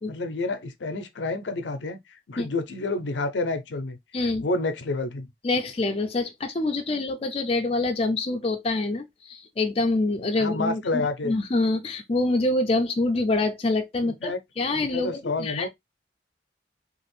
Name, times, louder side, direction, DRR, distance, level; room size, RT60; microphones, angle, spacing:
voice 1, 0.1-4.0 4.4-5.3 10.4-11.3 14.0-14.4 14.7-15.7, left 3 dB, 85° left, 0.6 m, -29 dB
voice 2, 5.4-15.7, left 2 dB, 35° left, 0.4 m, -26 dB
2.9 x 2.4 x 3.0 m
head